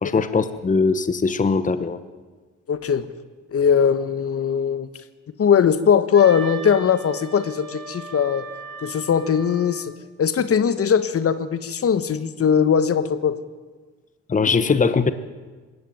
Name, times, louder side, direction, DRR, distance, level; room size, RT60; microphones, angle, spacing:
voice 1, 0.0-2.0 14.3-15.1, left 4 dB, 25° left, 12 dB, 1.1 m, -20 dB
voice 2, 2.7-3.1 3.5-4.9 5.4-8.5 8.8-9.9 10.2-13.4, left 7 dB, 50° left, 13 dB, 1.3 m, -20 dB
Wind instrument woodwind instrument, 6.1-10.0, right 4 dB, 40° right, 5.1 m, -38 dB
20.0 x 16.0 x 9.1 m, 1.3 s
cardioid pair, 90°, 30 cm